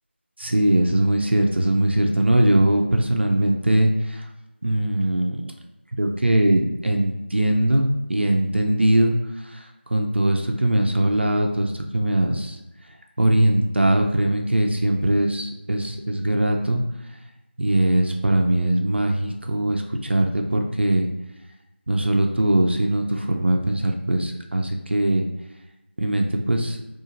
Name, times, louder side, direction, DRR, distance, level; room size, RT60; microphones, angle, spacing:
voice 1, 0.4-4.3 4.6-5.5 5.9-12.6 13.2-16.8 17.6-21.1 21.9-25.2 26.0-26.8, right 1 dB, 65° right, 2 dB, 0.4 m, -21 dB
2.6 x 2.4 x 2.9 m, 0.97 s
figure-of-eight pair, 175°, 6 cm